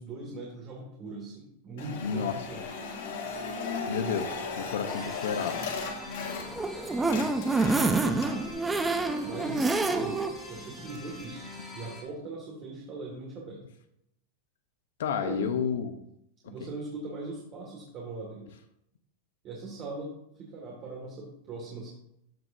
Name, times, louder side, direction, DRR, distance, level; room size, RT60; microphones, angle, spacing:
voice 1, 0.0-3.0 9.2-10.2 10.5-11.5 11.7-13.6 15.2-15.6 16.4-18.5 19.4-20.1 20.4-21.9, right 2 dB, 30° right, -4 dB, 2.1 m, -40 dB
sound 1, 1.8-6.7 7.0-8.5, left 4 dB, 65° left, 1.9 m, -36 dB
voice 2, 2.0-2.5 3.9-5.6 7.2-7.3 15.0-16.0 16.6-16.7, left 7 dB, 85° left, 7 dB, 0.9 m, -31 dB
sound 2, 4.9-12.0, left 2 dB, 10° left, 2.0 m, -45 dB
sound 3, 6.3-10.3 10.7-10.8 11.1-11.2, right 3 dB, 5° right, 0.6 m, -27 dB
14.0 x 6.1 x 2.7 m, 0.76 s
supercardioid pair, 170°, 0 cm